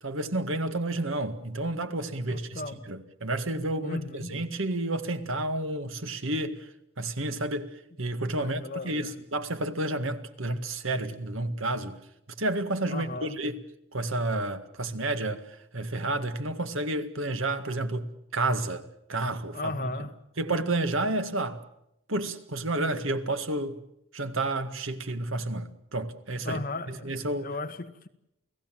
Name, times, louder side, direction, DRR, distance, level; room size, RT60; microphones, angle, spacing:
voice 1, 0.0-2.6 2.9-6.7 7.0-12.0 12.4-13.6 13.9-19.9 20.4-21.6 22.1-23.8 24.1-27.5, right 2 dB, 70° right, 1.9 m, -31 dB
voice 2, 2.3-2.8 3.8-4.3 8.4-9.1 12.9-13.4 19.5-20.1 26.4-27.1 27.4-28.1, left 2 dB, 40° left, 1.7 m, -36 dB
29.5 x 17.5 x 7.6 m
head